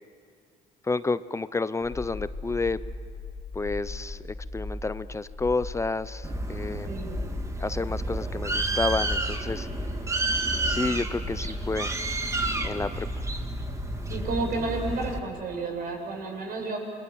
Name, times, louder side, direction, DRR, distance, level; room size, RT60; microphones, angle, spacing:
voice 1, 0.8-2.8 3.5-7.0 7.6-9.7 10.6-11.9 12.6-13.1, left 3 dB, 15° left, 15 dB, 0.6 m, -30 dB
sound 1, 1.8-14.4, left 3 dB, 35° left, 3.1 m, -38 dB
Bird, 6.2-15.2, right 2 dB, 20° right, 2.0 m, -30 dB
voice 2, 6.8-7.2 14.1-16.8, right 3 dB, 60° right, 1 dB, 7.6 m, -31 dB
28.0 x 23.5 x 7.8 m, 2.3 s
cardioid pair, 110°, 17 cm